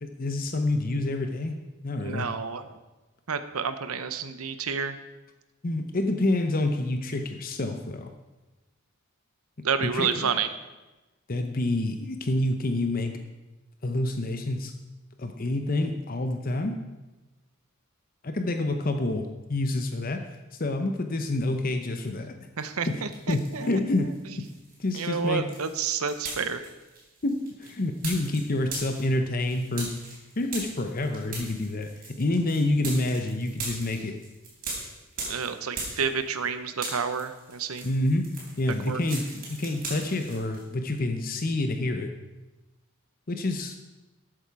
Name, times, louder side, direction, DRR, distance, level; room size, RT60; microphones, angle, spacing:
voice 1, 0.0-1.6 1.8-2.3 5.6-8.1 9.8-10.3 11.3-13.2 13.8-14.7 15.2-16.8 18.2-20.2 20.6-22.3 22.9-24.4 24.8-25.5 27.2-30.0 30.4-34.2 37.8-38.3 38.6-42.1 43.3-43.8, left 2 dB, 40° left, 6 dB, 0.8 m, -28 dB
voice 2, 2.0-2.7 3.3-5.0 9.6-10.5 22.6-23.8 24.9-26.7 35.2-37.9 38.9-39.0, right 6 dB, 80° right, 11 dB, 0.8 m, -30 dB
sound 1, 22.6-23.7 24.1-36.5 36.7-40.6, right 3 dB, 40° right, 4.0 m, -39 dB
12.5 x 8.5 x 4.7 m, 1.1 s
head